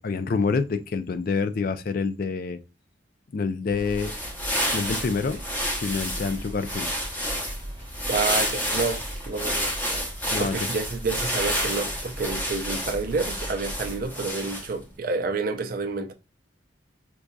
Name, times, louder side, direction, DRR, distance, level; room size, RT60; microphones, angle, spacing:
voice 1, 0.0-2.6 3.3-4.1 4.7-5.4 5.8-6.9 10.3-10.6, left 4 dB, 45° left, 0.4 m, -27 dB
sound 1, 3.7-14.1, right 1 dB, 25° right, 1.0 m, -39 dB
sound 2, 3.8-14.8, equal, 10° left, 0.8 m, -30 dB
voice 2, 8.1-9.7 10.4-16.1, right 4 dB, 45° right, 0.4 m, -29 dB
4.6 x 2.6 x 2.2 m
head